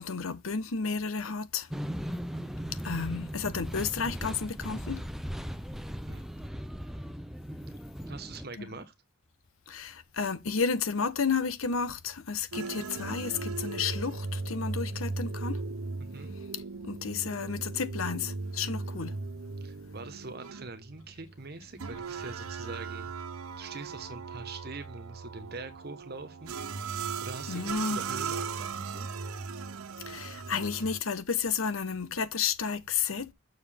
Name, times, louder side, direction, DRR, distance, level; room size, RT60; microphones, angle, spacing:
voice 1, 0.0-1.7 2.8-5.0 8.6-8.7 9.7-15.6 16.5-19.2 27.5-28.0 30.0-33.3, left 5 dB, 70° left, 0.9 m, -32 dB
sound 1, 1.7-8.5, equal, ahead, 0.5 m, -38 dB
voice 2, 8.1-8.9 16.1-16.3 19.6-23.1 23.6-26.5 27.2-29.1, right 3 dB, 45° right, 1.2 m, -43 dB
sound 2, 12.5-31.0, right 4 dB, 85° right, 0.7 m, -37 dB
7.0 x 6.5 x 3.5 m
head